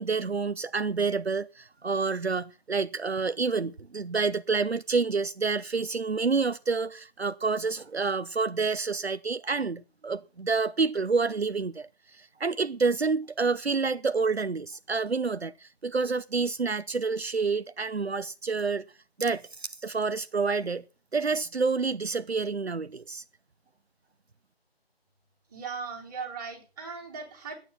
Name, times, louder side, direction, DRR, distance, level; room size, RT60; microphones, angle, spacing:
voice 1, 0.0-18.8 19.2-20.8 21.1-23.2, right 4 dB, 80° right, 0.8 m, -28 dB
voice 2, 25.5-27.5, right 5 dB, 20° right, 4.1 m, -38 dB
13.0 x 9.4 x 5.8 m
figure-of-eight pair, 160°, 31 cm